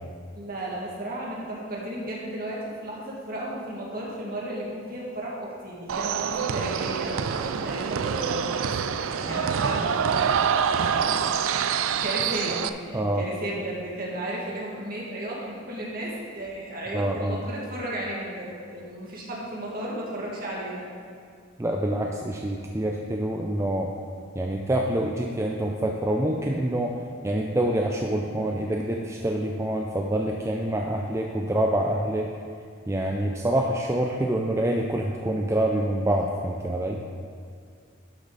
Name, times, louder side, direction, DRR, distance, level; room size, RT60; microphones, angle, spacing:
voice 1, 0.4-10.3 10.7-20.8, right 1 dB, 45° right, -4 dB, 2.1 m, -34 dB
sound 1, 5.9-12.7, right 7 dB, 85° right, 0.4 m, -26 dB
sound 2, 9.1-13.1 13.5-14.3 16.1-16.6, equal, 40° left, 1.9 m, -43 dB
voice 2, 12.9-13.2 16.9-17.4 21.6-23.9 24.3-26.9 27.2-32.3 32.9-37.0, right 1 dB, 15° right, 1 dB, 0.4 m, -26 dB
11.5 x 6.4 x 4.0 m, 2.2 s
head